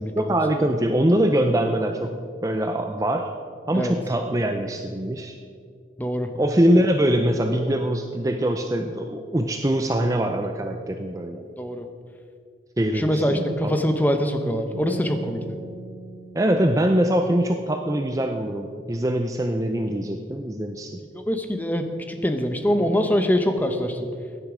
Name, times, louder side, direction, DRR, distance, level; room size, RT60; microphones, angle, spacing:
voice 1, 0.2-3.3 3.7-5.4 6.3-11.4 12.8-13.8 16.3-20.9, right 1 dB, 20° right, 5 dB, 0.5 m, -23 dB
voice 2, 6.0-6.3 11.6-11.8 12.9-15.6 21.1-24.1, equal, 10° left, 6 dB, 0.9 m, -24 dB
sound 1, 14.7-17.9, right 2 dB, 55° right, 4.2 m, -39 dB
16.0 x 10.5 x 5.0 m, 2.2 s
head